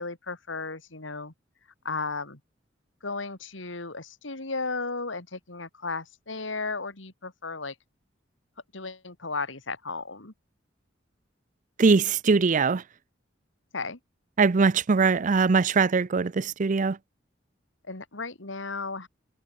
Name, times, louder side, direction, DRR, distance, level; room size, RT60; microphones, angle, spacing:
voice 1, 0.0-1.3 1.8-2.4 3.0-7.7 8.7-10.3 13.7-14.0 17.9-19.1, left 3 dB, 75° left, 3.0 m, -34 dB
voice 2, 11.8-12.8 14.4-17.0, right 4 dB, 45° right, 0.5 m, -21 dB
head